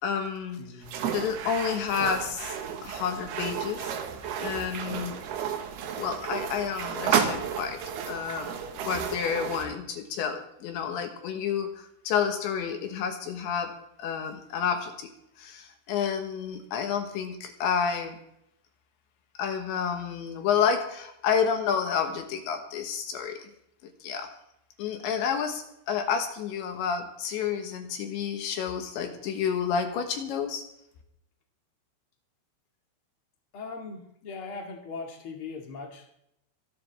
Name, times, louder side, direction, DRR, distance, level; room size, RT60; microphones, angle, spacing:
voice 1, 0.0-0.6 1.0-2.6 2.8-3.9 4.4-5.2 6.0-7.8 8.1-8.6 8.8-15.1 15.4-18.2 19.4-23.5 24.0-24.3 24.8-30.6, left 7 dB, 70° left, 5 dB, 3.3 m, -30 dB
sound 1, 0.8-9.7, right 8 dB, 65° right, 2.8 m, -32 dB
voice 2, 33.5-36.1, left 4 dB, 50° left, 1 dB, 1.6 m, -39 dB
25.5 x 11.5 x 3.5 m, 0.78 s
omnidirectional pair, 5.9 m